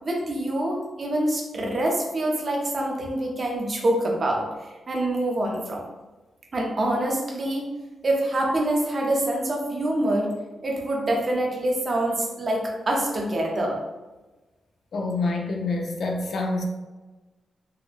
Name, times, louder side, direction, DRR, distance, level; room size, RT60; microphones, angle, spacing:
voice 1, 0.0-4.5 4.9-5.8 6.5-7.7 8.0-10.3 10.6-13.8, right 1 dB, 40° right, 0 dB, 0.6 m, -25 dB
voice 2, 14.9-16.6, left 3 dB, 60° left, 2 dB, 0.4 m, -27 dB
3.6 x 2.1 x 2.4 m, 1.2 s
wide cardioid pair, 135°, 0 cm